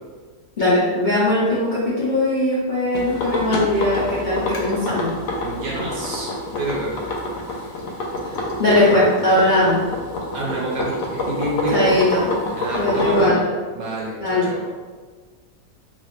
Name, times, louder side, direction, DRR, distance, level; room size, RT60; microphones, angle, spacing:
voice 1, 0.6-5.1 8.2-8.3 8.6-9.8 11.7-12.2 12.8-13.4 14.2-14.5, left 1 dB, 55° left, -10 dB, 0.5 m, -19 dB
sound 1, 2.9-13.3, left 2 dB, 80° left, 1.2 m, -27 dB
voice 2, 5.4-6.3 6.6-6.9 7.4-7.7 8.7-8.9 10.3-11.9 12.6-13.4 13.7-14.6, right 2 dB, 65° right, -5 dB, 1.1 m, -27 dB
3.0 x 2.4 x 3.1 m, 1.5 s
omnidirectional pair, 1.8 m